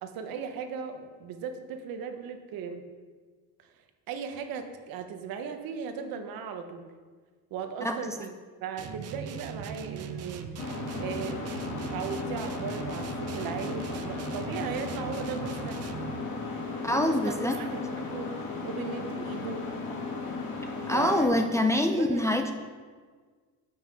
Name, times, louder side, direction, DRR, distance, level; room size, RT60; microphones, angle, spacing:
voice 1, 0.0-2.9 3.6-3.7 4.1-6.9 7.5-8.3 8.6-10.5 11.0-11.4 11.9-16.0 16.9-18.3 18.6-19.7 20.9-22.5, right 6 dB, 75° right, 6 dB, 1.1 m, -37 dB
voice 2, 7.8-8.1 16.8-17.6 20.9-22.5, left 1 dB, 10° left, 3 dB, 0.4 m, -25 dB
sound 1, 8.8-16.3, right 7 dB, 45° right, 0.6 m, -40 dB
sound 2, 10.6-21.2, left 3 dB, 75° left, 1.8 m, -35 dB
7.8 x 5.8 x 6.2 m, 1.5 s
cardioid pair, 155°, 35 cm